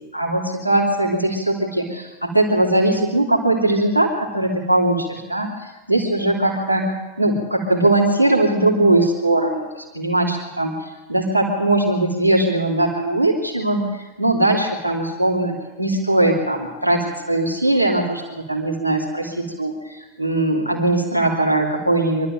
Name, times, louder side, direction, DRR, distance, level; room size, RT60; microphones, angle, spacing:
voice 1, 0.1-9.7 9.9-10.7 11.1-22.3, right 1 dB, 90° right, -2 dB, 3.1 m, -20 dB
24.0 x 12.5 x 9.2 m, 1.1 s
figure-of-eight pair, 90°, 0 cm